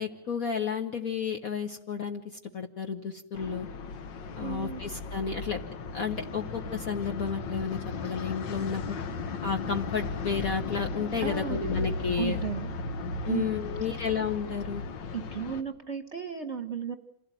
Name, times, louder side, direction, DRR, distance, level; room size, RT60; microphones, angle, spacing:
voice 1, 0.0-2.2 2.5-3.7 4.4-5.6 5.9-9.0 9.4-12.4 13.2-14.8, left 6 dB, 50° left, 4 dB, 1.5 m, -32 dB
sound 1, 3.3-15.6, left 3 dB, 70° left, 1.8 m, -36 dB
voice 2, 4.4-4.8 11.2-11.7 12.2-12.7 13.3-13.5 15.1-16.9, right 7 dB, 40° right, 8 dB, 1.3 m, -34 dB
27.5 x 16.5 x 9.1 m, 0.80 s
omnidirectional pair, 2.1 m